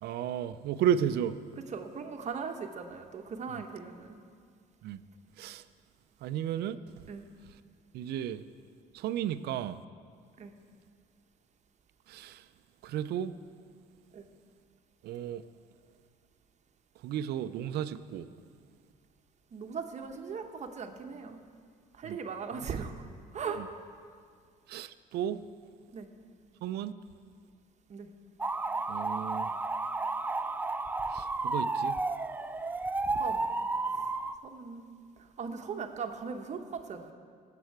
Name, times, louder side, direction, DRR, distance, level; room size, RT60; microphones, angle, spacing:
voice 1, 0.0-1.4 4.8-5.0 5.4-5.6 6.2-6.8 7.9-8.4 8.9-9.8 12.1-12.4 12.8-13.3 15.0-15.4 17.0-18.3 22.0-22.2 23.6-23.7 24.7-25.4 26.6-26.9 28.9-29.5 31.1-32.0, right 9 dB, 75° right, 13 dB, 0.5 m, -33 dB
voice 2, 1.7-4.2 7.1-7.2 10.4-10.5 14.1-14.3 19.5-21.4 21.9-23.6 25.9-26.1 27.9-28.1 33.2-33.5 33.9-34.1 34.4-37.1, right 5 dB, 45° right, 5 dB, 0.9 m, -39 dB
sound 1, 28.4-34.4, right 3 dB, 10° right, 0.3 m, -32 dB
17.0 x 7.6 x 4.7 m, 2.1 s
cardioid pair, 110°, 17 cm